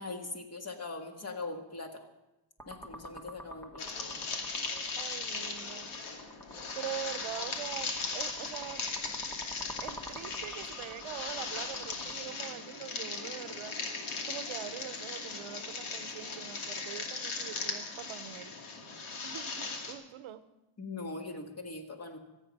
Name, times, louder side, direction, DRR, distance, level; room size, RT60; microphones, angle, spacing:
voice 1, 0.0-2.0 2.7-3.9 20.8-22.2, left 3 dB, 30° left, 3 dB, 1.8 m, -41 dB
sound 1, 2.6-12.1, equal, 5° left, 1.4 m, -47 dB
sound 2, 3.8-19.9, left 4 dB, 80° left, 2.5 m, -38 dB
voice 2, 4.9-5.9 6.7-8.9 9.8-13.8 14.3-18.5 19.2-20.4, right 10 dB, 75° right, 13 dB, 1.0 m, -43 dB
26.0 x 8.8 x 5.4 m, 0.99 s
wide cardioid pair, 170°, 48 cm